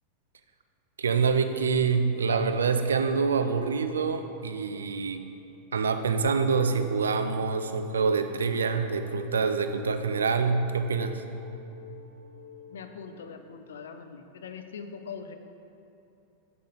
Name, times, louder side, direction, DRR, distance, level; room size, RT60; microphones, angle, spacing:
voice 1, 1.0-5.2 5.7-11.2, right 5 dB, 70° right, 8 dB, 0.4 m, -26 dB
sound 1, 1.5-13.8, left 4 dB, 40° right, 0.9 m, -51 dB
voice 2, 12.7-15.3, left 6 dB, 65° left, 8 dB, 0.4 m, -42 dB
6.3 x 5.5 x 3.9 m, 2.7 s
figure-of-eight pair, 90°, 0 cm